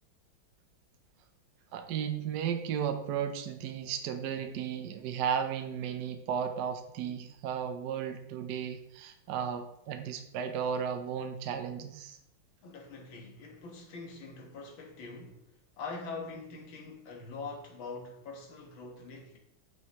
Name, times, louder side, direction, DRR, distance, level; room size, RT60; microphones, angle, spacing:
voice 1, 1.7-12.2, right 8 dB, 65° right, 1.2 m, -34 dB
voice 2, 12.6-19.4, left 4 dB, 70° left, 2.1 m, -44 dB
9.7 x 6.1 x 3.0 m
omnidirectional pair, 2.3 m